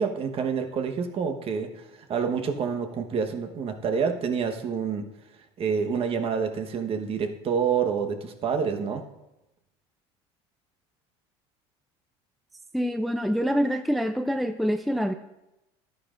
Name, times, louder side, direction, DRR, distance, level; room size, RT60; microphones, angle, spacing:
voice 1, 0.0-5.0 5.6-9.0, right 6 dB, 40° right, 5 dB, 1.2 m, -28 dB
voice 2, 12.7-15.1, equal, ahead, 8 dB, 0.4 m, -26 dB
12.0 x 10.0 x 2.5 m, 0.95 s
supercardioid pair, 100°, 14 cm